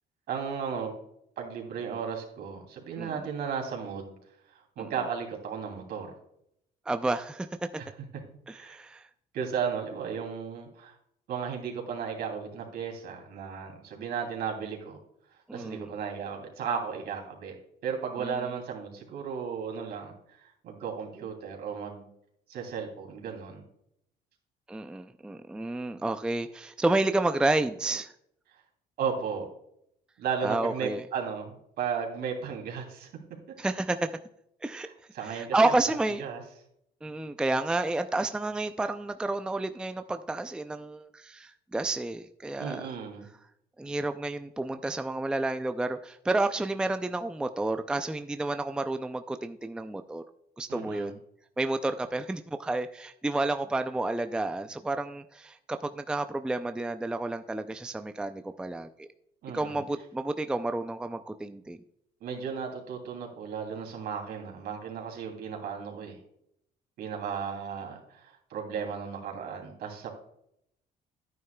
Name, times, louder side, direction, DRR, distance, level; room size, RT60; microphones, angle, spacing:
voice 1, 0.3-0.9 1.4-4.1 4.8-6.1 7.8-7.9 8.5-8.7 9.3-10.9 11.3-15.0 15.5-17.5 17.8-20.1 20.6-22.1 22.5-23.6 29.0-29.5 30.2-33.1 34.8-35.7 36.2-36.4 42.6-43.3 50.7-51.1 59.4-59.8 62.2-66.2 67.0-70.1, right 6 dB, 70° right, 1 dB, 2.9 m, -35 dB
voice 2, 6.9-7.7 8.5-9.0 15.5-15.9 18.2-18.4 24.7-28.1 30.4-31.0 33.6-34.1 34.6-34.9 35.2-36.2 37.0-42.8 43.8-50.2 50.6-51.2 51.6-59.1 59.5-61.8, right 2 dB, 5° right, 9 dB, 0.4 m, -30 dB
11.0 x 9.4 x 2.3 m, 0.74 s
cardioid pair, 110°, 17 cm